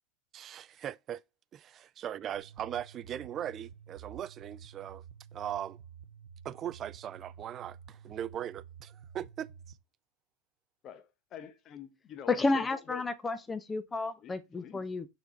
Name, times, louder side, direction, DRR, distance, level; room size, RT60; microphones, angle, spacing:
voice 1, 0.3-1.2 1.5-5.0 5.3-5.8 6.4-9.5, right 10 dB, 30° right, 0.3 m, -39 dB
sound 1, 2.3-9.7, right 7 dB, 90° right, 0.7 m, -51 dB
voice 2, 10.8-13.0 14.2-14.8, left 9 dB, 35° left, 0.9 m, -47 dB
voice 3, 12.3-15.1, left 3 dB, 15° left, 0.7 m, -31 dB
6.9 x 4.0 x 4.2 m
supercardioid pair, 130°, 0 cm